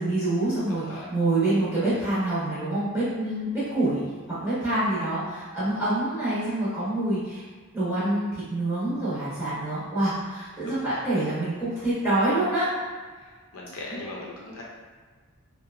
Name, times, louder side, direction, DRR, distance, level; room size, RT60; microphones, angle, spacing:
voice 1, 0.0-7.4 7.7-12.7 13.9-14.0, right 1 dB, 10° right, -13 dB, 0.8 m, -26 dB
voice 2, 10.6-11.0 13.5-14.6, left 2 dB, 65° left, -3 dB, 0.5 m, -39 dB
2.7 x 2.2 x 2.4 m, 1.5 s
head